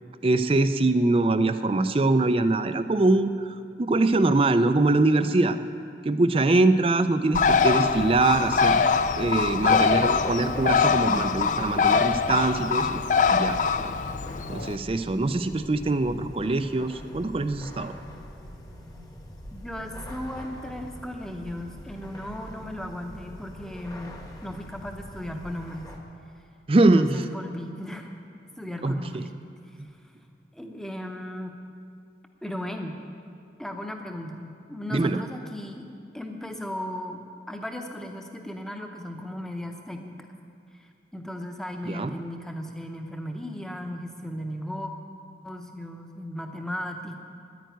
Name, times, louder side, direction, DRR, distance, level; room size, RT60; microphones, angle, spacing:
voice 1, 0.2-3.3 3.8-5.6 6.0-8.8 9.2-13.0 13.3-13.6 14.5-17.9 26.7-27.2 28.8-29.2 29.8-29.9 34.9-35.2 41.9-42.1, right 2 dB, 30° right, 11 dB, 0.4 m, -23 dB
Bird, 7.3-14.8, left 5 dB, 40° left, 0.4 m, -23 dB
sound 1, 7.5-26.0, equal, 20° left, 1.2 m, -42 dB
voice 2, 19.5-25.9 26.8-28.1 28.6-29.3 29.7-29.8 30.5-31.6 32.4-33.0 33.6-35.9 36.1-37.2 37.5-40.3 40.8-44.9 45.4-47.2, left 1 dB, 5° left, 4 dB, 0.8 m, -36 dB
10.5 x 9.3 x 9.2 m, 2.4 s
head